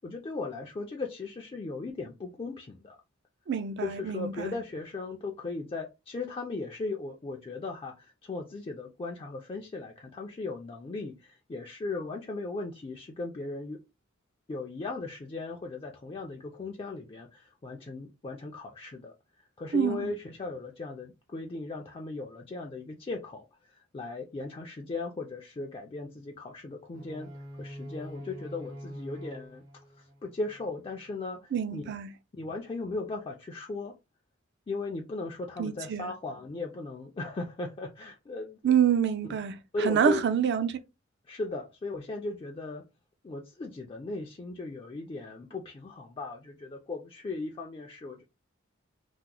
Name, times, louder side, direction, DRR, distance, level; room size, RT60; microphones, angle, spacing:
voice 1, 0.0-3.0 3.8-13.8 14.5-27.3 27.6-29.6 29.9-31.8 32.3-33.9 34.7-38.6 39.7-40.2 41.3-42.8 43.2-48.2, left 3 dB, 25° left, 0.4 m, -37 dB
voice 2, 3.5-4.5 19.7-20.1 31.5-32.1 35.6-36.1 38.6-40.8, right 8 dB, 55° right, 0.4 m, -27 dB
sound 1, 26.9-30.9, equal, 80° right, 1.2 m, -44 dB
2.9 x 2.0 x 3.6 m
head